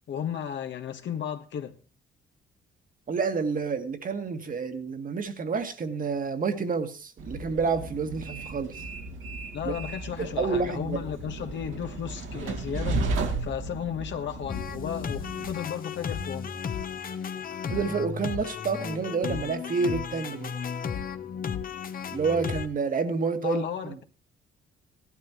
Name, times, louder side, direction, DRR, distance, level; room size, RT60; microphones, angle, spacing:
voice 1, 0.1-1.8 9.5-13.1 13.4-16.6 23.4-24.0, left 9 dB, 65° left, 1.5 m, -34 dB
voice 2, 3.1-8.8 9.6-9.7 10.2-11.0 17.7-20.5 22.1-24.0, right 5 dB, 45° right, 1.8 m, -29 dB
Train, 7.2-15.5, right 3 dB, 80° right, 2.4 m, -34 dB
sound 1, 14.5-22.7, left 7 dB, 45° left, 1.0 m, -34 dB
16.5 x 12.0 x 3.0 m
cardioid pair, 90°, 20 cm